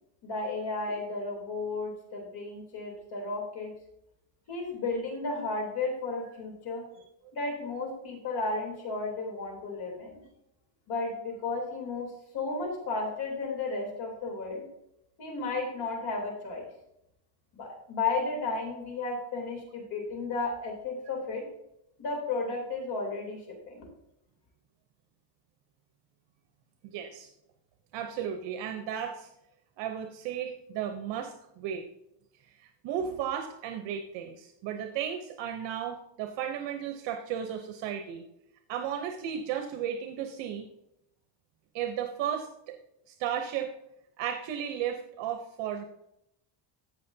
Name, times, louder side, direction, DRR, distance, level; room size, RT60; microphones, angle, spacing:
voice 1, 0.2-3.7 4.5-6.9 7.3-10.2 10.9-14.6 15.2-16.7 17.5-21.4 22.0-23.4 23.7-23.8, left 3 dB, 60° left, 1 dB, 3.4 m, -33 dB
voice 2, 26.8-27.3 27.9-29.3 29.8-31.8 32.5-38.2 38.7-40.7 41.7-42.8 43.1-43.7 44.2-45.8, right 9 dB, 75° right, 5 dB, 0.9 m, -34 dB
15.0 x 5.9 x 2.8 m, 0.81 s
cardioid pair, 150°, 45 cm